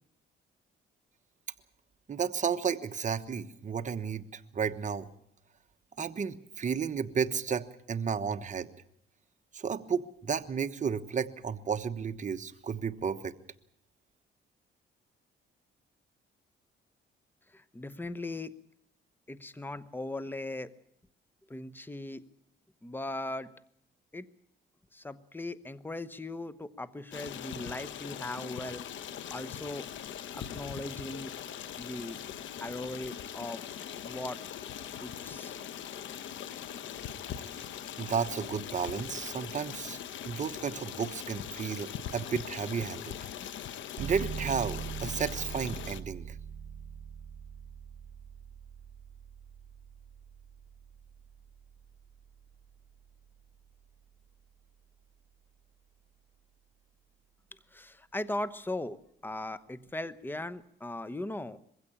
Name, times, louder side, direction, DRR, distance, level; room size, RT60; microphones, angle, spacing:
voice 1, 2.1-5.1 6.0-8.7 9.5-13.3 38.0-40.0 40.3-43.1 44.0-46.3, right 6 dB, 40° right, 8 dB, 1.2 m, -33 dB
voice 2, 17.5-18.5 19.3-20.7 21.5-22.2 22.8-23.5 24.1-24.3 24.9-28.8 29.3-29.9 30.3-31.3 31.8-32.2 32.6-33.7 34.0-34.4 35.0-35.6 57.7-59.0 59.2-61.6, left 2 dB, 10° left, 14 dB, 1.0 m, -38 dB
Stream, 27.1-46.0, left 9 dB, 75° left, 1.1 m, -41 dB
sound 1, 44.0-54.5, right 7 dB, 70° right, 1.8 m, -43 dB
21.5 x 16.0 x 8.7 m, 0.73 s
cardioid pair, 90°, 20 cm